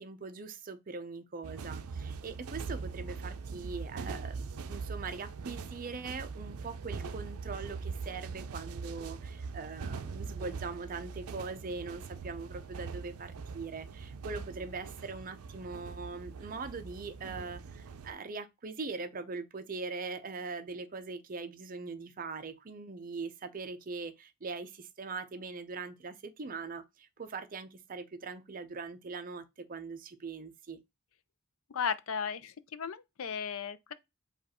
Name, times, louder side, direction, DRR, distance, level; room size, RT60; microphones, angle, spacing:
voice 1, 0.0-30.8, right 4 dB, 40° right, 0.6 m, -41 dB
sound 1, 1.4-18.1, right 4 dB, 85° right, 0.5 m, -42 dB
voice 2, 31.7-33.9, left 6 dB, 70° left, 0.5 m, -35 dB
5.2 x 2.4 x 4.2 m
head